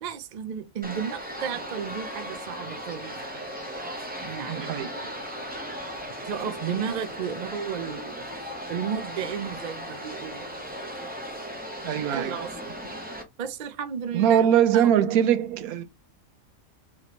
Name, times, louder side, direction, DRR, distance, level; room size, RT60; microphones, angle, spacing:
voice 1, 0.0-3.5 4.2-5.2 6.2-10.5 11.9-12.8 13.4-14.5 14.7-14.9, right 8 dB, 55° right, 0.5 m, -34 dB
sound 1, 0.8-13.2, equal, 10° right, 0.7 m, -37 dB
voice 2, 4.5-4.9 11.8-12.4 14.1-15.8, right 9 dB, 85° right, 1.1 m, -22 dB
3.1 x 3.0 x 4.1 m
omnidirectional pair, 1.5 m